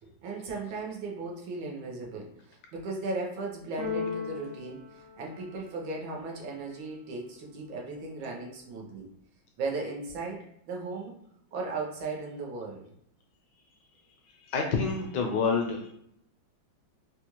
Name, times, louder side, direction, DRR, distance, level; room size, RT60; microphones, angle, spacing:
voice 1, 0.0-9.1 9.6-11.2 11.5-12.9, right 3 dB, 85° right, -1 dB, 1.6 m, -37 dB
Keyboard (musical), 3.8-5.9, left 5 dB, 55° right, 0.8 m, -37 dB
voice 2, 14.4-15.9, left 5 dB, 75° left, 2 dB, 1.1 m, -28 dB
4.1 x 2.3 x 2.9 m, 0.73 s
omnidirectional pair, 2.1 m